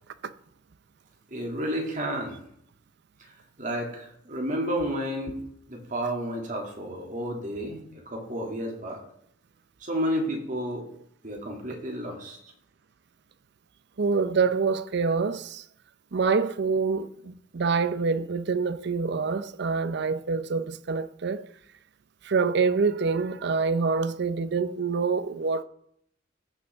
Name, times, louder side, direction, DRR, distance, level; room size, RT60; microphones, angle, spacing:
voice 1, 1.3-2.4 3.6-5.4 5.7-7.8 8.1-9.0 9.8-10.9 11.2-12.4, equal, 40° right, 2.3 m, -31 dB
voice 2, 14.0-15.6 16.1-21.5 22.2-25.6, right 4 dB, 55° right, 0.5 m, -26 dB
15.0 x 6.7 x 3.5 m
head